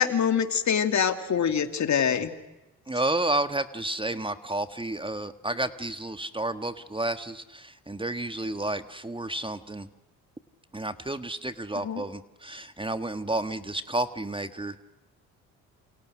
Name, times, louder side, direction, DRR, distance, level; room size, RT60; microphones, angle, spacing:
voice 1, 0.0-2.3 11.8-12.0, left 8 dB, 50° left, 8 dB, 2.7 m, -24 dB
voice 2, 2.9-9.9 10.7-14.8, right 2 dB, 15° right, 10 dB, 1.6 m, -31 dB
28.5 x 28.5 x 6.3 m, 1.0 s
supercardioid pair, 55°, 35 cm